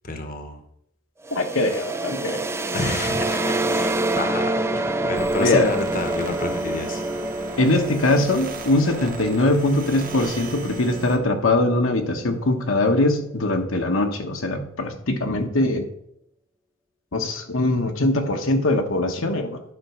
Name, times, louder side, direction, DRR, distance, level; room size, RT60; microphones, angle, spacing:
voice 1, 0.0-0.6 2.7-7.6, left 2 dB, 40° left, 6 dB, 1.0 m, -30 dB
sound 1, 1.2-12.9, right 2 dB, 15° right, 0.5 m, -28 dB
voice 2, 1.3-2.4 5.4-5.7 7.6-15.9 17.1-19.6, left 2 dB, 70° left, 4 dB, 1.1 m, -22 dB
sound 2, 5.1-11.2, right 4 dB, 40° right, 1.3 m, -38 dB
11.0 x 5.2 x 5.9 m, 0.76 s
head